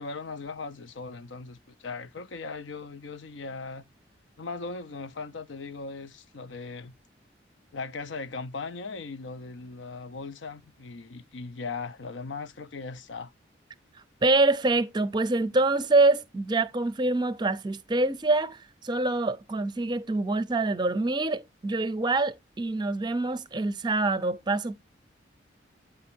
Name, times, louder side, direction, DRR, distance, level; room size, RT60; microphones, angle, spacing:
voice 1, 0.0-3.8 4.4-7.0 7.7-13.3, left 4 dB, 85° left, 0.7 m, -38 dB
voice 2, 14.2-24.8, right 2 dB, 25° right, 0.5 m, -25 dB
8.9 x 3.5 x 4.4 m
head